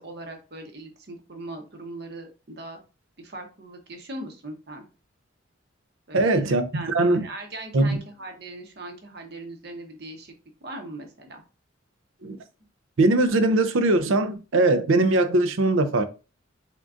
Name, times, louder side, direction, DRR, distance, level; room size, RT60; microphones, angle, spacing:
voice 1, 0.0-2.8 3.2-4.8 6.1-6.4 6.7-7.0 7.2-10.3 10.6-11.4, right 2 dB, 50° right, 0.9 m, -39 dB
voice 2, 6.1-7.3 7.7-8.0 12.2-12.4 13.0-16.0, right 2 dB, 75° right, 0.5 m, -21 dB
3.7 x 3.6 x 2.5 m
head